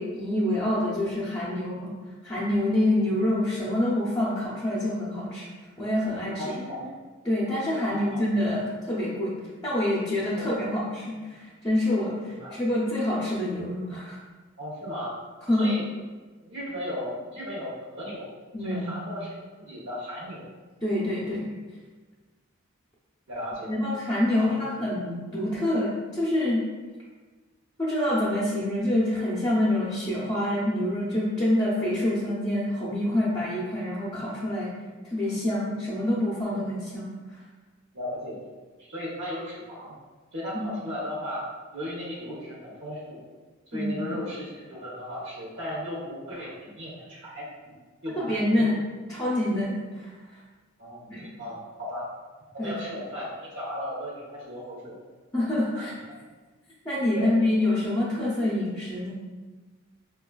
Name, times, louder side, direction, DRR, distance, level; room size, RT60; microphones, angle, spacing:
voice 1, 0.0-1.9 2.2-5.5 5.8-6.8 7.2-9.3 9.6-12.2 12.5-14.2 15.5-15.7 18.5-18.9 20.8-21.5 23.7-26.6 27.8-34.7 35.0-37.1 40.5-40.7 43.7-44.2 48.2-48.8 49.1-50.4 51.1-51.3 52.6-52.7 55.3-55.9 56.8-59.1, left 1 dB, 20° left, -8 dB, 0.6 m, -26 dB
voice 2, 6.4-6.8 7.9-8.2 10.4-10.5 12.3-12.5 14.6-15.1 15.5-15.8 16.4-18.3 18.6-20.5 23.3-23.8 24.3-24.8 37.9-38.4 38.8-40.0 40.3-41.4 41.7-43.2 43.7-48.7 50.8-52.0 52.5-55.0 55.7-56.0 57.1-57.3, equal, 60° right, -5 dB, 0.9 m, -36 dB
4.7 x 2.3 x 2.3 m, 1.3 s
head